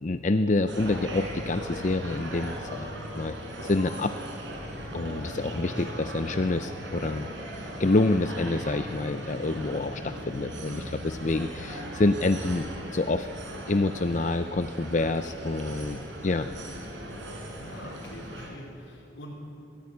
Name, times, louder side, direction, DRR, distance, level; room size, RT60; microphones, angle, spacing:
voice 1, 0.0-3.3 3.6-4.1 4.9-7.3 7.8-13.3 13.7-16.5, left 2 dB, 40° left, 9 dB, 0.5 m, -27 dB
voice 2, 0.6-1.2 5.4-6.1 15.7-15.9 17.6-19.3, equal, 80° left, -4 dB, 4.6 m, -45 dB
sound 1, 0.7-18.5, equal, 70° right, 4.7 m, -38 dB
22.5 x 15.5 x 9.5 m, 2.6 s
head